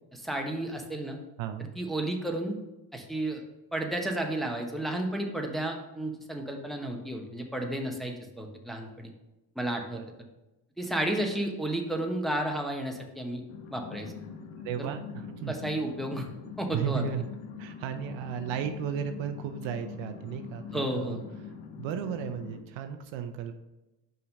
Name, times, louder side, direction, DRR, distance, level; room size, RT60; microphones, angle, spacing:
voice 1, 0.1-1.2 1.8-2.6 2.9-3.4 3.7-9.1 9.5-10.0 10.8-13.4 13.7-14.1 14.8-14.9 15.5-16.3 16.6-17.0 20.7-21.2, right 1 dB, ahead, 1 dB, 1.1 m, -32 dB
sound 1, 13.5-22.6, left 7 dB, 75° left, 0.8 m, -43 dB
voice 2, 14.6-15.5 16.7-17.2 17.6-21.2 21.8-23.5, right 8 dB, 70° right, 8 dB, 0.7 m, -34 dB
5.5 x 3.9 x 5.2 m, 0.99 s
supercardioid pair, 70°, 49 cm